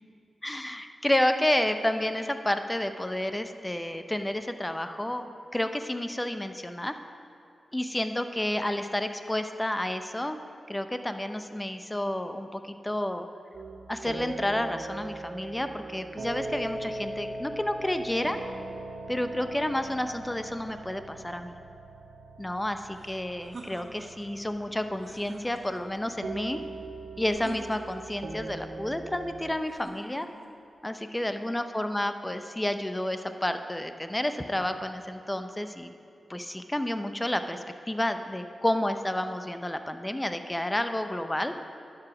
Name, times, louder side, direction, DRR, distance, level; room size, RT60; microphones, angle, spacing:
voice 1, 0.4-7.0 7.7-10.4 10.7-13.3 13.9-18.4 19.1-21.6 22.4-26.6 27.2-30.3 30.8-35.9 36.3-37.6 37.9-41.5, left 1 dB, 15° left, 8 dB, 0.6 m, -30 dB
sound 1, 13.5-29.6, right 2 dB, 80° right, 0.7 m, -40 dB
sound 2, 22.9-24.3 24.9-26.0 27.3-28.2 29.7-30.5, right 2 dB, 55° right, 1.3 m, -46 dB
11.0 x 4.9 x 6.0 m, 2.4 s
cardioid pair, 55°, 0 cm